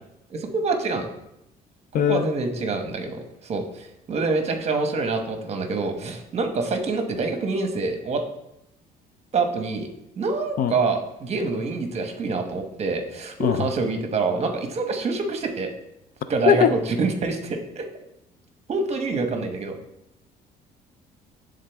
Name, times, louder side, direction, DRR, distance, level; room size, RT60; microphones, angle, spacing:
voice 1, 0.3-1.1 1.9-8.2 9.3-9.9 10.2-15.7 16.3-17.9 18.7-19.7, right 3 dB, 40° right, 5 dB, 1.1 m, -26 dB
voice 2, 1.9-2.3 10.6-10.7 13.4-13.7 16.5-16.7, left 9 dB, 55° left, 12 dB, 0.4 m, -20 dB
10.5 x 3.8 x 3.4 m, 0.83 s
cardioid pair, 110°, 17 cm